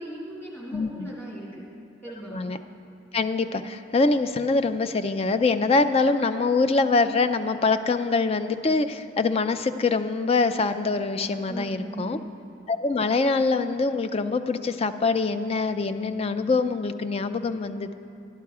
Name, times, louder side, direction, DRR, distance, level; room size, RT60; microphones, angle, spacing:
voice 1, 0.0-1.6 2.0-2.4 11.5-12.3, right 1 dB, 10° left, -6 dB, 2.2 m, -38 dB
voice 2, 0.7-1.1 2.3-2.6 3.1-12.2 12.7-17.9, left 3 dB, 30° left, 10 dB, 0.4 m, -24 dB
12.0 x 10.5 x 4.8 m, 2.6 s
head